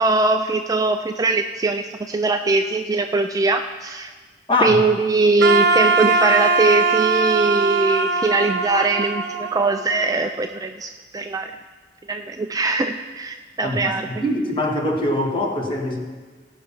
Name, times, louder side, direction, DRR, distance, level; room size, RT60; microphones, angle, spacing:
voice 1, 0.0-4.1 4.6-11.5 12.1-14.1, right 3 dB, 20° right, 6 dB, 0.3 m, -21 dB
voice 2, 4.5-4.8 13.6-16.0, left 1 dB, 25° left, 0 dB, 1.5 m, -23 dB
Wind instrument woodwind instrument, 5.4-10.4, right 4 dB, 65° right, 0.9 m, -21 dB
17.0 x 5.7 x 5.6 m, 1.4 s
head